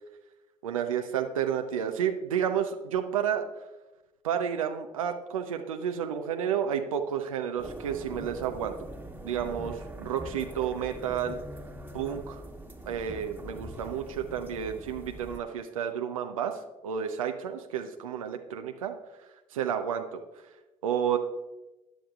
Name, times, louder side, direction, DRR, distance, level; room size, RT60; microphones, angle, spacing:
voice 1, 0.6-3.4 4.2-8.7 9.2-11.4 11.9-12.4 12.9-18.9 19.5-20.2 20.8-21.2, right 8 dB, 85° right, 5 dB, 0.6 m, -31 dB
sound 1, 7.6-15.4, right 1 dB, 10° right, 1.3 m, -43 dB
14.0 x 10.0 x 2.4 m, 1.1 s
hypercardioid pair, 55°, 17 cm